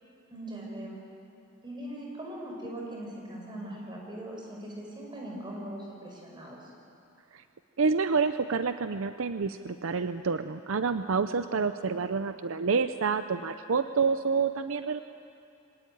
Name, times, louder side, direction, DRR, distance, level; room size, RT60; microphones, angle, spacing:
voice 1, 0.3-1.0 1.6-6.7, right 1 dB, 20° right, -1 dB, 5.5 m, -40 dB
voice 2, 7.8-15.0, right 5 dB, 70° right, 10 dB, 0.6 m, -28 dB
25.0 x 18.5 x 9.3 m, 2.7 s
head